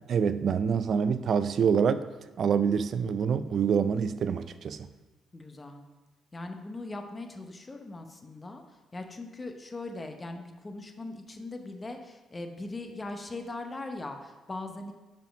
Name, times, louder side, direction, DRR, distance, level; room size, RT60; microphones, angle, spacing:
voice 1, 0.1-2.0 2.4-4.9, right 6 dB, 60° right, 13 dB, 0.3 m, -26 dB
voice 2, 5.3-5.8 6.3-14.9, left 2 dB, 25° left, 5 dB, 0.8 m, -40 dB
5.6 x 5.2 x 5.0 m, 1.2 s
cardioid pair, 90°, 0 cm